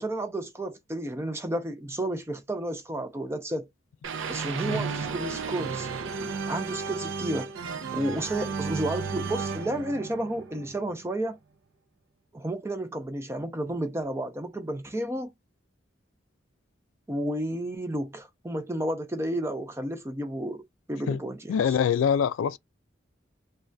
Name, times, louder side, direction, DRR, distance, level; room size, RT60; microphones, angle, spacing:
voice 1, 0.0-3.7 4.3-5.9 6.5-7.5 7.9-11.4 12.3-15.3 17.1-20.6 20.9-21.8, right 1 dB, 15° right, 0.4 m, -31 dB
sound 1, 4.0-11.0, right 5 dB, 80° right, 0.5 m, -33 dB
voice 2, 21.5-22.6, left 7 dB, 85° left, 0.3 m, -24 dB
3.3 x 2.2 x 2.6 m
head